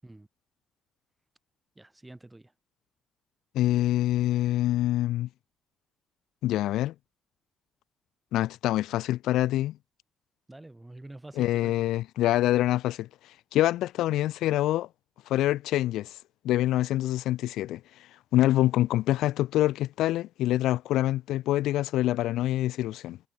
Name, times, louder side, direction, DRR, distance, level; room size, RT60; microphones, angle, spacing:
voice 1, 1.7-2.5 10.5-11.9, right 2 dB, 15° right, 5.0 m, -47 dB
voice 2, 3.5-5.3 6.4-6.9 8.3-9.7 11.4-13.1 13.5-14.9 15.3-16.2 16.4-17.8 18.3-23.2, left 14 dB, 85° left, 1.2 m, -25 dB
cardioid pair, 90°, 0 cm